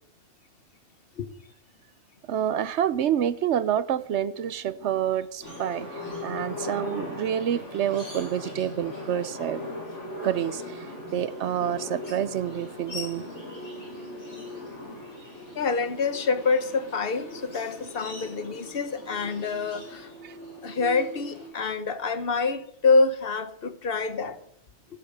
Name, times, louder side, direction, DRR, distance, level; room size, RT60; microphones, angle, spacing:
voice 1, 2.3-9.6 10.2-10.9 11.1-13.2 20.2-20.4, right 10 dB, 75° right, 1.0 m, -28 dB
sound 1, 5.4-21.5, left 1 dB, 80° left, 5.8 m, -39 dB
voice 2, 15.5-20.1 20.6-24.4, left 4 dB, 55° left, 1.3 m, -26 dB
16.5 x 8.5 x 6.6 m
omnidirectional pair, 1.2 m